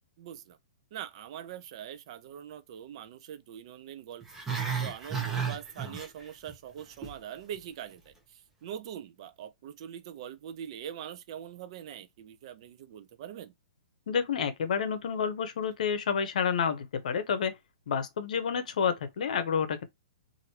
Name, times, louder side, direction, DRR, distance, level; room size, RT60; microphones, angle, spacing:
voice 1, 0.2-0.6 0.9-4.2 4.6-13.5, right 10 dB, 45° right, 0.5 m, -43 dB
Growling, 4.2-6.5 6.8-7.2 7.5-7.6, right 6 dB, 10° right, 0.8 m, -33 dB
voice 2, 14.1-17.5 17.9-19.8, left 7 dB, 65° left, 0.8 m, -29 dB
3.0 x 2.6 x 2.8 m
hypercardioid pair, 155°, 4 cm